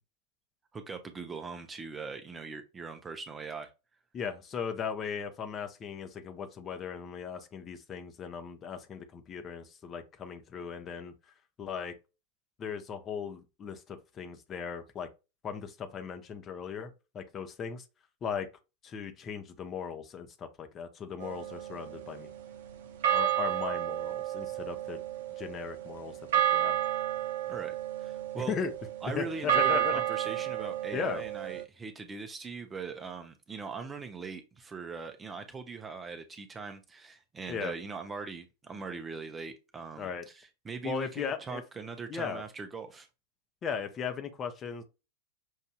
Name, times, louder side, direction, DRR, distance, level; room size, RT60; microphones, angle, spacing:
voice 1, 0.7-3.7 27.5-27.8 28.0-28.5 29.0-43.1, right 4 dB, 15° right, 0.7 m, -41 dB
voice 2, 4.1-11.1 11.6-12.0 12.6-15.1 15.4-17.8 18.2-18.5 18.8-22.3 23.1-25.0 25.4-26.2 26.5-26.8 28.4-28.7 29.1-30.0 30.9-31.2 37.5-37.7 40.0-40.3 40.8-41.6 42.1-42.4 43.6-44.8, left 6 dB, 25° left, 0.8 m, -37 dB
sound 1, 21.2-22.5 23.0-31.6, right 12 dB, 60° right, 0.7 m, -31 dB
6.3 x 2.6 x 2.3 m
figure-of-eight pair, 90°, 0 cm